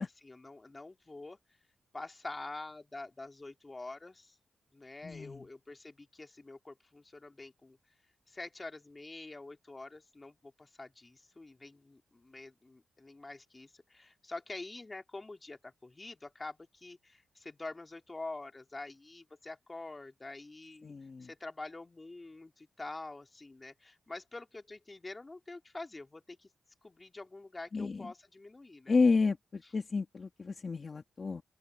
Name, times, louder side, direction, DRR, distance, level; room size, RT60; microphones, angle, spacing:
voice 1, 0.2-1.4 1.9-4.4 4.7-7.8 8.3-20.9 21.2-26.5 26.8-29.0, left 2 dB, 25° left, 3.1 m, -46 dB
voice 2, 5.0-5.5 20.8-21.3 27.7-28.1 28.9-31.4, left 4 dB, 45° left, 2.3 m, -31 dB
open air
cardioid pair, 70°, 0 cm